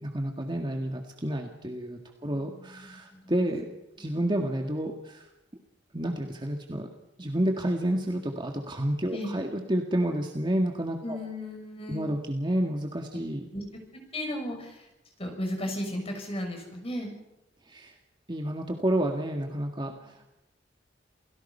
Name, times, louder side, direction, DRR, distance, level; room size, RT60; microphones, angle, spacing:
voice 1, 0.0-3.7 4.0-5.3 5.9-6.9 7.2-11.2 11.9-13.5 17.7-18.0 18.3-20.4, right 1 dB, 25° right, 2 dB, 1.8 m, -30 dB
voice 2, 2.2-3.3 9.1-9.3 11.0-12.1 13.5-13.6 13.9-14.9 15.2-17.1 19.9-20.1, left 1 dB, 30° left, 2 dB, 6.5 m, -35 dB
28.5 x 18.5 x 5.6 m, 0.92 s
head